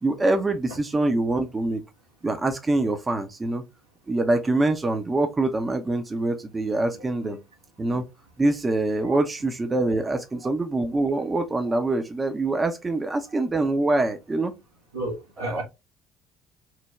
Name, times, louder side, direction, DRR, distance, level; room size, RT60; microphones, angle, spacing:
voice 1, 0.0-1.8 2.2-3.6 4.1-7.4 7.8-8.0 8.4-14.5 15.4-15.6, right 2 dB, 25° right, 0.6 m, -24 dB
voice 2, 14.9-15.6, right 1 dB, 85° right, 1.1 m, -32 dB
3.2 x 2.2 x 3.4 m
figure-of-eight pair, 50°, 0 cm